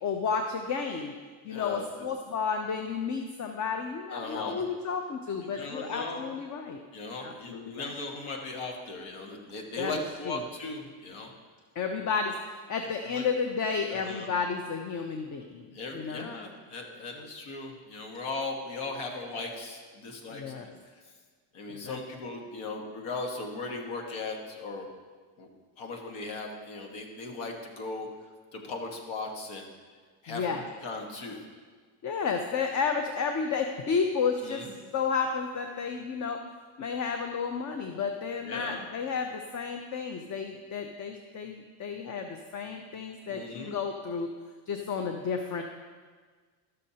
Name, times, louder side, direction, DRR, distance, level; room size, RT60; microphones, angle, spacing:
voice 1, 0.0-1.1 1.4-6.8 7.2-7.9 9.8-9.9 10.3-10.4 11.8-12.4 12.7-15.7 15.9-16.3 20.3-20.7 21.7-22.0 30.3-30.6 32.0-34.7 34.9-36.4 36.8-44.4 44.7-45.6, left 5 dB, 40° left, 5 dB, 0.6 m, -32 dB
voice 2, 1.5-2.0 4.1-4.7 5.4-6.3 6.9-11.3 13.0-13.2 13.9-14.3 15.7-20.7 21.5-24.9 25.4-25.5 25.8-28.1 28.5-29.7 30.2-30.5 30.8-31.4 34.4-34.7 38.4-38.9 43.3-43.8, left 3 dB, 75° left, 2 dB, 1.5 m, -38 dB
13.0 x 6.5 x 2.8 m, 1.5 s
cardioid pair, 110°, 49 cm